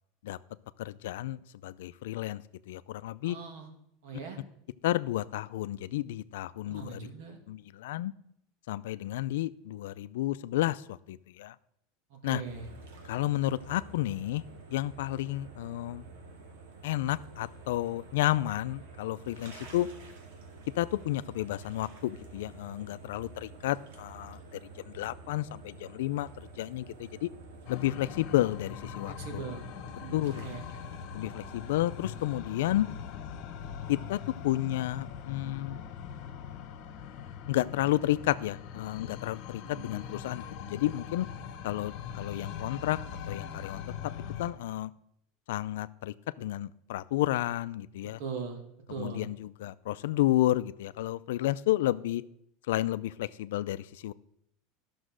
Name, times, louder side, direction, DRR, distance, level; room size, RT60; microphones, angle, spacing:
voice 1, 0.8-3.4 4.8-7.1 7.5-8.1 8.7-11.6 12.2-12.4 13.0-14.4 14.7-16.0 16.8-19.9 20.8-24.6 24.9-27.3 27.7-29.5 30.1-30.5 31.1-32.9 33.9-35.8 37.5-41.3 41.6-43.0 43.3-44.1 44.4-44.9 45.5-48.2 49.0-52.2 52.7-54.1, left 15 dB, 85° left, 15 dB, 0.4 m, -31 dB
voice 2, 3.2-3.7 4.0-4.4 6.7-7.4 12.1-12.7 29.0-29.7 30.0-30.6 39.6-39.9 48.2-48.6 48.9-49.3, right 5 dB, 70° right, 4 dB, 2.4 m, -40 dB
sound 1, 12.4-32.4, right 3 dB, 85° right, 2.2 m, -49 dB
sound 2, 27.7-44.5, left 8 dB, 55° left, 1.3 m, -42 dB
12.0 x 6.3 x 6.3 m, 0.74 s
supercardioid pair, 145°, 0 cm